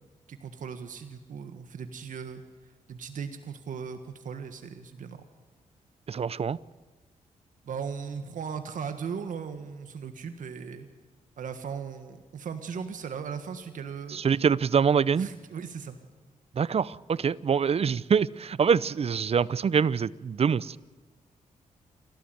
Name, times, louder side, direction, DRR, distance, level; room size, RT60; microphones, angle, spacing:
voice 1, 0.3-2.4 2.9-5.2 7.6-10.9 11.4-14.2 15.2-16.0, right 6 dB, 70° right, 8 dB, 1.6 m, -37 dB
voice 2, 6.1-6.6 14.1-15.3 16.6-20.8, right 6 dB, 45° right, 21 dB, 0.6 m, -25 dB
28.5 x 13.0 x 9.4 m, 1.3 s
cardioid pair, 65°, 14 cm